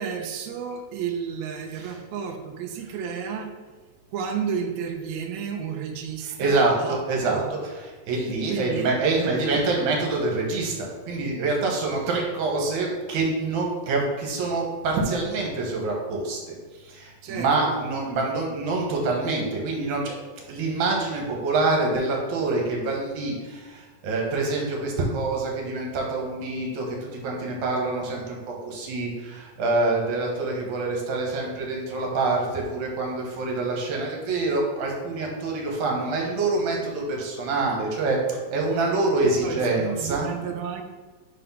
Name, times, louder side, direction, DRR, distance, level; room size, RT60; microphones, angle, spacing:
voice 1, 0.0-3.5 4.1-7.0 7.3-7.5 8.5-8.9 9.2-9.6 17.2-17.8 39.2-40.8, right 7 dB, 85° right, 4 dB, 1.5 m, -32 dB
voice 2, 6.2-20.2 20.5-40.3, right 3 dB, 65° right, -1 dB, 2.3 m, -26 dB
5.0 x 4.2 x 5.5 m, 1.4 s
omnidirectional pair, 4.0 m